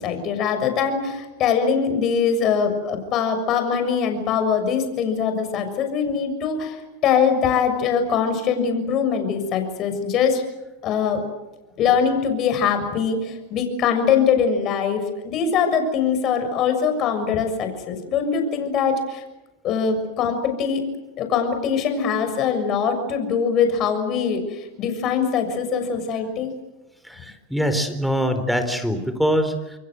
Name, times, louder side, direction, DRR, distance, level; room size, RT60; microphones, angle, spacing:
voice 1, 0.0-6.8 7.0-10.4 10.8-11.2 11.8-19.2 19.6-20.8 21.2-26.5, left 6 dB, 40° left, 7 dB, 6.8 m, -22 dB
voice 2, 27.0-29.8, equal, ahead, 8 dB, 4.2 m, -23 dB
28.0 x 22.5 x 8.0 m, 1.0 s
supercardioid pair, 120°, 0 cm